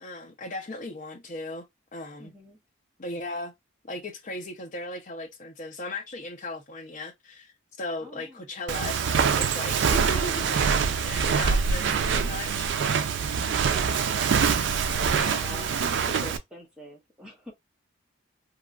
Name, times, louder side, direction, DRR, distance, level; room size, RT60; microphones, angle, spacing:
voice 1, 0.0-2.3 3.0-3.5 3.8-7.5 7.8-9.0 9.4-10.6 11.0-12.7 15.1-15.7, left 2 dB, 35° left, 0.6 m, -37 dB
voice 2, 2.2-2.6 8.0-8.4 13.4-14.6 14.8-15.7 16.1-17.5, equal, 5° right, 0.7 m, -46 dB
Walk footsteps, 8.7-16.4, right 6 dB, 55° right, 0.3 m, -24 dB
2.9 x 2.3 x 2.3 m
head